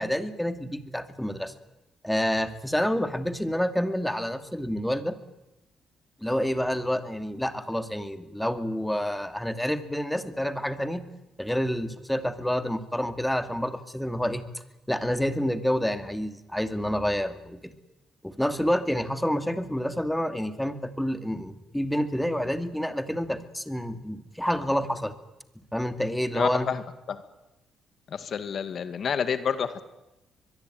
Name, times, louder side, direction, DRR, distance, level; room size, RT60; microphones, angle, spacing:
voice 1, 0.0-1.5 2.0-5.2 6.2-11.1 11.4-14.4 14.9-17.7 18.2-25.1 25.7-26.7, equal, 5° left, 9 dB, 2.4 m, -28 dB
voice 2, 26.3-26.8 27.1-27.2 28.1-29.8, left 7 dB, 55° left, 11 dB, 2.0 m, -29 dB
23.0 x 22.5 x 9.3 m, 0.96 s
cardioid pair, 90°, 0 cm